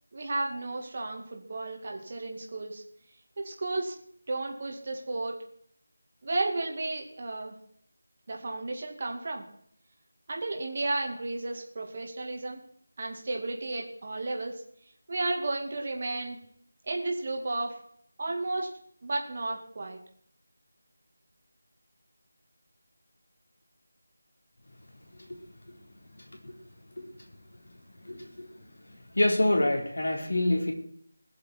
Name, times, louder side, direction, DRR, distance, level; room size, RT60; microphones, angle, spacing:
voice 1, 0.1-2.8 3.4-3.9 4.3-5.4 6.2-7.6 8.3-9.4 10.3-12.6 13.0-14.6 15.1-16.4 16.9-17.8 18.2-18.7 19.0-20.0, right 2 dB, 30° right, 1 dB, 2.2 m, -33 dB
voice 2, 28.0-28.5 29.2-30.7, left 1 dB, 70° left, 2 dB, 3.8 m, -26 dB
21.0 x 7.4 x 4.5 m, 0.64 s
figure-of-eight pair, 175°, 0 cm